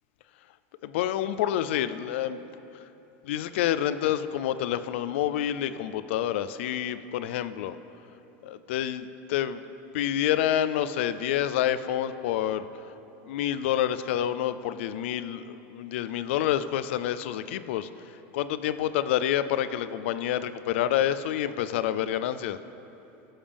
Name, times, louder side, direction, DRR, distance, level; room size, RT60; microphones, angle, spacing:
voice 1, 0.8-2.4 3.2-7.8 8.4-9.6 9.9-12.7 13.2-17.9 18.3-22.6, left 11 dB, 70° left, 13 dB, 0.4 m, -28 dB
17.5 x 7.2 x 3.5 m, 2.9 s
supercardioid pair, 170°, 7 cm